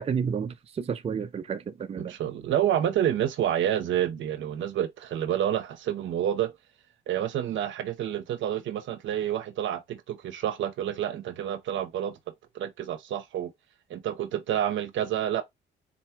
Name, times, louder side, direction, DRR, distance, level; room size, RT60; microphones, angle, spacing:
voice 1, 0.0-2.1, right 6 dB, 30° right, 0.4 m, -31 dB
voice 2, 2.0-6.5 7.1-12.2 12.5-13.5 13.9-15.4, right 10 dB, 75° right, 0.7 m, -28 dB
4.1 x 2.2 x 4.3 m
cardioid pair, 90°, 20 cm